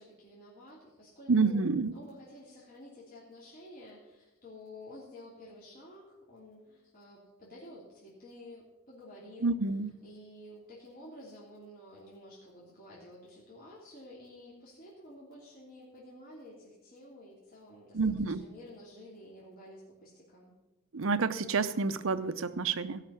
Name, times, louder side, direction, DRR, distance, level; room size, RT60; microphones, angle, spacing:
voice 1, 0.0-1.6 1.9-9.6 10.0-18.0 18.3-20.5, left 1 dB, 45° left, -6 dB, 3.0 m, -51 dB
voice 2, 1.3-1.9 9.4-9.9 17.9-18.4 20.9-23.0, right 4 dB, 65° right, 12 dB, 0.7 m, -29 dB
17.0 x 5.9 x 7.2 m, 1.0 s
head